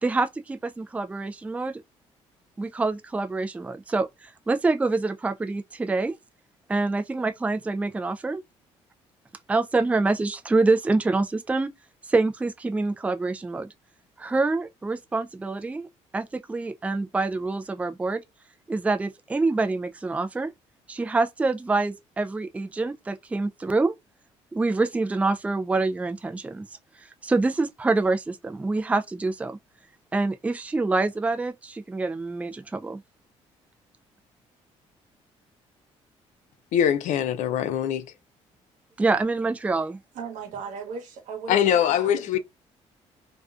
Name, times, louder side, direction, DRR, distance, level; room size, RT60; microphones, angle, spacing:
voice 1, 0.0-1.8 2.6-6.2 6.7-8.4 9.5-11.7 12.1-13.7 14.2-15.9 16.1-18.2 18.7-20.5 20.9-23.9 24.5-26.6 27.2-29.6 30.1-33.0 39.0-40.0, right 3 dB, 10° right, 0.3 m, -26 dB
voice 2, 36.7-38.1 41.5-42.4, left 9 dB, 70° left, 0.4 m, -23 dB
voice 3, 40.1-42.4, right 5 dB, 75° right, 1.0 m, -37 dB
2.4 x 2.2 x 2.3 m
supercardioid pair, 70°, 13 cm